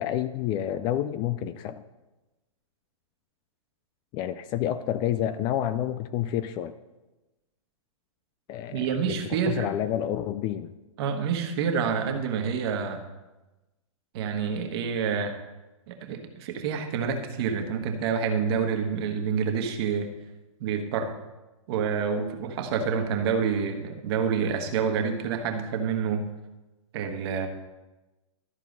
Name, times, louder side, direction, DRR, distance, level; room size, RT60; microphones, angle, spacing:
voice 1, 0.0-1.8 4.1-6.7 8.5-9.2 9.5-10.7, left 11 dB, 25° left, 12 dB, 0.3 m, -29 dB
voice 2, 8.7-9.7 11.0-13.0 14.1-15.3 15.9-20.1 20.6-21.1 21.7-26.2 26.9-27.5, right 6 dB, 45° right, 5 dB, 1.4 m, -28 dB
13.0 x 4.6 x 5.3 m, 1.1 s
hypercardioid pair, 130°, 17 cm